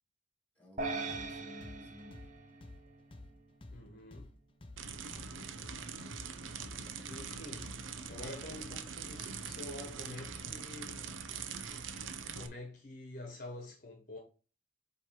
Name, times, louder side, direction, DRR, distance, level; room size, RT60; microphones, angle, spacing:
voice 1, 0.5-2.2 2.5-2.6 5.1-5.7, left 2 dB, 10° left, 2.4 m, -55 dB
sound 1, 0.8-3.3, right 3 dB, 40° right, 0.8 m, -41 dB
sound 2, 1.1-9.0, left 1 dB, 25° left, 0.6 m, -52 dB
voice 2, 3.7-4.4 7.1-7.7 8.1-11.1 12.3-14.2, left 1 dB, 45° left, 1.2 m, -47 dB
sound 3, 4.8-12.5, right 6 dB, 90° right, 0.7 m, -43 dB
7.5 x 3.2 x 4.6 m
head